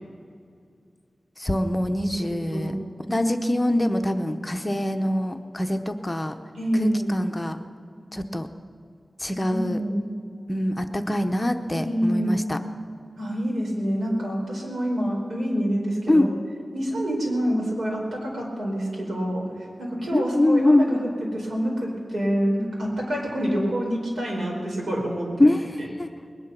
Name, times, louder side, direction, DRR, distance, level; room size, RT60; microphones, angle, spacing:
voice 1, 1.4-2.7 3.1-6.3 6.8-7.6 8.1-8.5 9.2-9.8 10.5-12.6 14.3-14.4 16.1-16.3 20.1-20.9 25.4-25.6 26.0-26.1, left 1 dB, 15° left, 7 dB, 0.8 m, -23 dB
voice 2, 2.0-2.7 6.5-7.1 9.5-10.0 11.7-12.4 13.2-16.3 16.7-25.5 25.8-25.9, equal, 85° right, -2 dB, 4.9 m, -27 dB
20.5 x 11.0 x 6.0 m, 2.4 s
wide cardioid pair, 110°, 0 cm